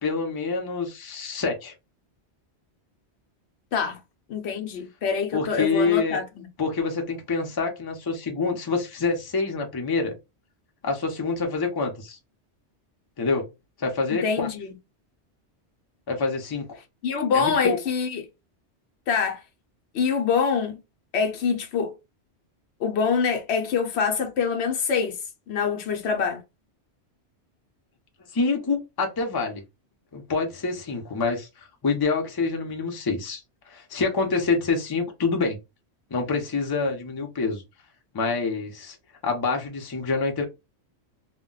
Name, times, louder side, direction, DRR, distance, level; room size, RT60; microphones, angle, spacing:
voice 1, 0.0-1.7 5.3-6.2 6.6-10.1 10.8-12.2 13.2-13.5 13.8-14.5 16.1-16.8 17.3-17.8 28.3-29.6 30.1-33.4 33.7-35.6 36.1-37.6 38.1-39.0 39.2-40.4, left 4 dB, 25° left, 0.5 m, -26 dB
voice 2, 4.3-6.5 14.1-14.7 17.0-18.2 19.1-19.4 19.9-20.8 21.1-22.0 22.8-25.2 25.5-26.4, left 6 dB, 70° left, 0.9 m, -25 dB
2.2 x 2.2 x 3.7 m
omnidirectional pair, 1.2 m